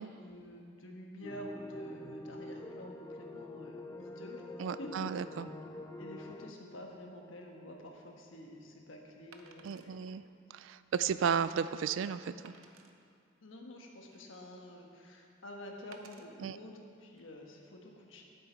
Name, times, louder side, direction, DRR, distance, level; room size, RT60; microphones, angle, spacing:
voice 1, 0.1-5.0 6.0-10.0 13.4-18.2, left 1 dB, 65° left, 1 dB, 1.3 m, -49 dB
sound 1, 1.2-6.5, left 1 dB, 15° left, 0.4 m, -46 dB
voice 2, 4.6-5.5 9.6-10.2 10.5-12.5 16.4-16.6, right 7 dB, 65° right, 14 dB, 0.3 m, -34 dB
Wood, 7.7-7.9 9.3-9.9 10.5-10.6 11.1-11.2 12.4-12.9 13.7-14.5 15.9-16.3 17.0-17.2, right 5 dB, 85° right, 0.7 m, -58 dB
12.5 x 7.6 x 4.6 m, 2.4 s
head